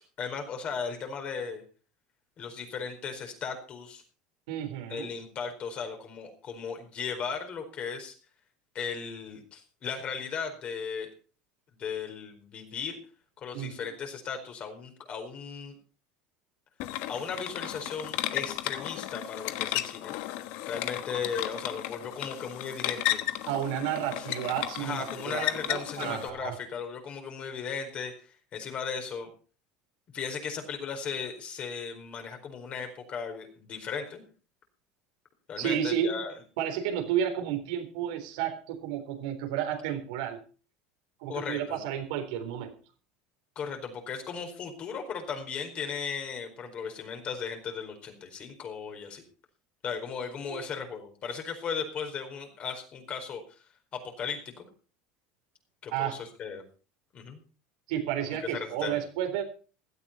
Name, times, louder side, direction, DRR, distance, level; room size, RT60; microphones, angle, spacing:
voice 1, 0.2-1.6 2.4-4.0 4.9-8.1 8.7-11.1 11.8-13.0 13.4-15.8 17.1-23.2 24.2-24.3 24.8-29.3 30.1-34.2 35.5-36.3 41.3-41.8 43.6-49.2 49.8-53.4 53.9-54.7 55.8-56.6 57.1-57.4 58.4-59.0, left 6 dB, 40° left, 5 dB, 4.5 m, -36 dB
voice 2, 4.5-5.1 13.5-13.7 23.5-26.5 35.6-36.2 36.6-40.4 41.2-42.7 50.5-50.7 55.9-56.1 57.9-59.4, right 10 dB, 85° right, 4 dB, 3.8 m, -31 dB
sound 1, 16.8-26.3, left 15 dB, 70° left, 1.2 m, -34 dB
16.5 x 13.0 x 4.4 m, 0.38 s
supercardioid pair, 130°, 3 cm